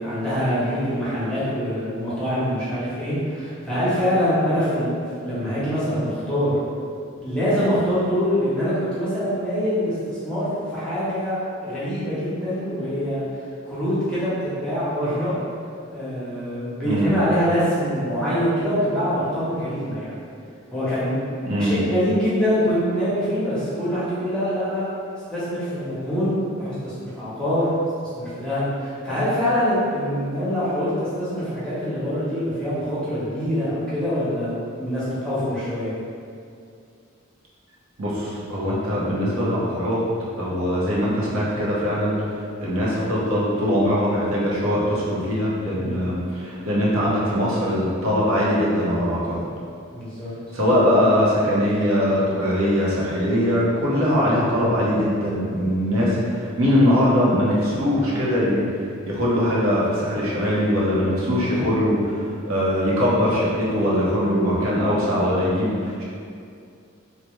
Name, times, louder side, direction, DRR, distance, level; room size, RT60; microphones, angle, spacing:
voice 1, 0.0-6.6 7.2-13.2 13.6-15.4 15.9-20.1 20.7-21.2 21.6-24.8 25.3-27.7 28.1-35.9 45.7-46.0 49.9-50.3 61.5-61.6, equal, 5° left, -11 dB, 0.8 m, -24 dB
voice 2, 16.8-17.1 21.4-21.8 38.0-40.0 40.4-49.4 50.5-58.7 59.1-66.0, equal, 80° right, -6 dB, 0.7 m, -21 dB
3.3 x 2.0 x 3.0 m, 2.4 s
head